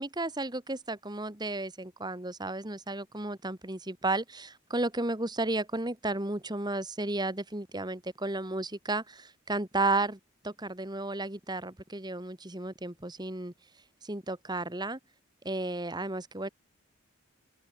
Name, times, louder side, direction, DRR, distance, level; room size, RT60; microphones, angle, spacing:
voice 1, 0.0-13.5 14.0-15.0 15.4-16.5, right 2 dB, 20° right, 2.3 m, -33 dB
head